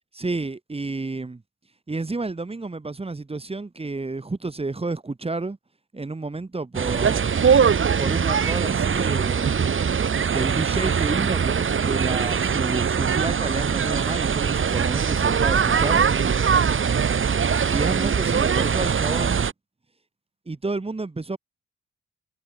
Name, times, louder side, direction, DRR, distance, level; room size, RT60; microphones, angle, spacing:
voice 1, 0.1-1.4 1.9-5.6 5.9-7.3 8.0-9.5 10.3-16.0 17.7-19.4 20.5-21.4, right 3 dB, 20° right, 2.9 m, -30 dB
sound 1, 6.7-19.5, right 6 dB, 40° right, 3.0 m, -22 dB
cardioid pair, 90°, 30 cm